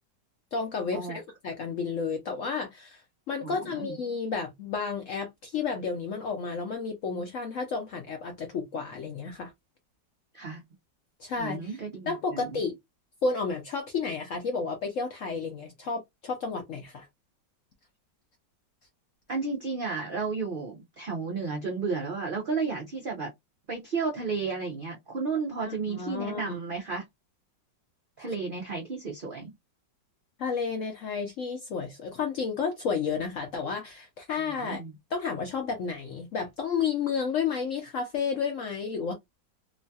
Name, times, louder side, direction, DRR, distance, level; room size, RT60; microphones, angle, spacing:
voice 1, 0.5-3.0 3.3-9.5 11.2-11.8 12.1-12.8 13.2-17.1 25.6-26.6 30.4-34.8 35.1-39.1, left 5 dB, 65° left, 0.8 m, -31 dB
voice 2, 3.4-4.0 10.3-10.6 11.4-12.6 19.3-23.3 23.7-27.0 28.2-29.5 34.5-34.9, right 4 dB, 90° right, 0.4 m, -33 dB
3.0 x 2.2 x 2.6 m
omnidirectional pair, 1.9 m